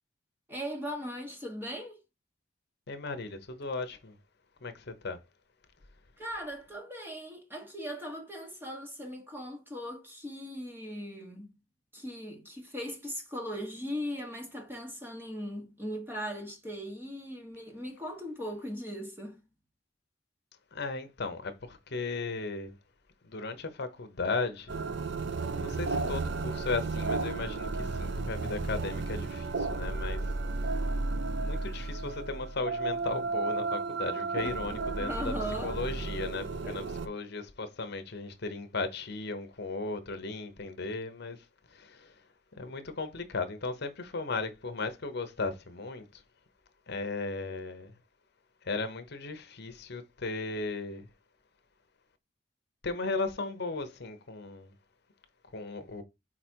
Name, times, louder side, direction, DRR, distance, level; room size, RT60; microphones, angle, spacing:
voice 1, 0.5-2.0 6.2-11.5 11.9-19.4 34.4-34.5 35.0-35.8 36.6-36.8, equal, 10° right, 1.4 m, -39 dB
voice 2, 2.9-4.1 4.6-5.2 20.7-22.7 23.2-24.7 25.6-30.2 31.4-35.3 35.6-41.4 41.7-42.1 42.6-46.2 46.9-47.9 48.6-51.1 52.8-54.7 55.5-56.0, left 3 dB, 60° left, 0.9 m, -36 dB
sound 1, 24.7-37.1, right 3 dB, 65° right, 0.6 m, -33 dB
4.9 x 4.3 x 4.5 m
head